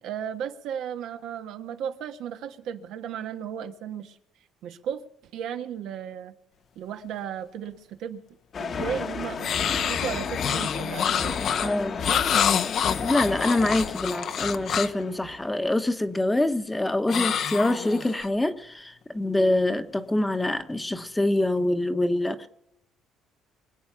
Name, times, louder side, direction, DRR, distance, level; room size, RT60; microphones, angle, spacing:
voice 1, 0.0-4.2 4.6-5.0 5.3-6.3 6.7-8.2 8.6-11.7, right 8 dB, 75° right, 1.4 m, -35 dB
sound 1, 8.5-15.6, left 5 dB, 40° left, 1.2 m, -34 dB
sound 2, 9.4-15.0 17.1-18.3, left 8 dB, 55° left, 0.8 m, -27 dB
voice 2, 11.6-12.1 13.0-22.5, left 1 dB, 10° left, 1.0 m, -25 dB
24.5 x 8.5 x 5.8 m
cardioid pair, 125°, 0 cm